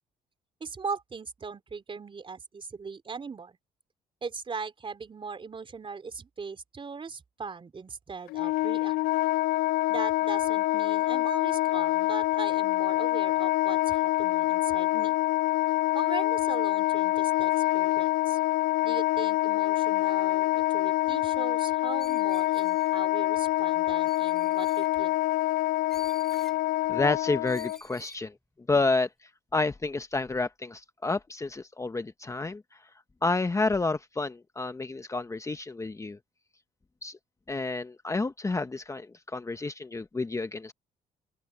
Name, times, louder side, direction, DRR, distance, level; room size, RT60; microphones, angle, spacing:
voice 1, 0.6-3.6 4.2-9.0 9.9-15.2 15.9-18.4 18.8-25.2, right 5 dB, 35° right, 3.7 m, -39 dB
Wind instrument woodwind instrument, 8.3-27.8, left 17 dB, 80° left, 0.5 m, -26 dB
Screech, 22.0-23.0 24.1-24.9 25.9-26.6 27.4-28.2, equal, 5° left, 3.1 m, -51 dB
voice 2, 26.9-28.3 28.7-29.1 29.5-32.6 33.2-36.2 37.0-37.2 37.5-40.7, left 3 dB, 20° left, 1.0 m, -29 dB
open air
cardioid pair, 80°, 15 cm